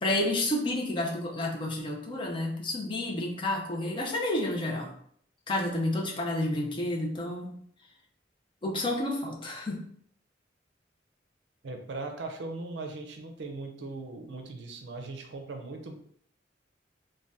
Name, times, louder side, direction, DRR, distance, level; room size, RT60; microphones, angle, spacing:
voice 1, 0.0-4.9 5.5-7.6 8.6-9.8, left 1 dB, 30° left, -1 dB, 0.5 m, -30 dB
voice 2, 11.6-15.9, right 3 dB, 70° right, 4 dB, 0.5 m, -39 dB
2.6 x 2.2 x 3.4 m, 0.63 s
head